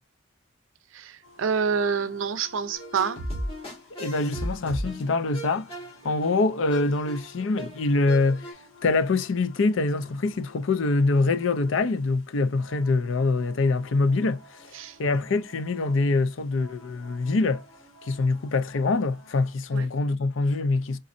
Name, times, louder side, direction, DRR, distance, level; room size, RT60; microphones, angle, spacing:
voice 1, 0.9-3.3 14.7-15.0 19.7-19.9, right 6 dB, 75° right, 0.5 m, -27 dB
sound 1, 1.2-19.6, left 2 dB, 90° left, 1.6 m, -52 dB
sound 2, 2.7-8.5, right 1 dB, 30° left, 2.1 m, -36 dB
voice 2, 4.0-5.7 6.0-8.5 8.8-14.7 15.0-17.6 18.0-21.0, left 3 dB, 70° left, 0.5 m, -24 dB
4.1 x 3.9 x 2.6 m
head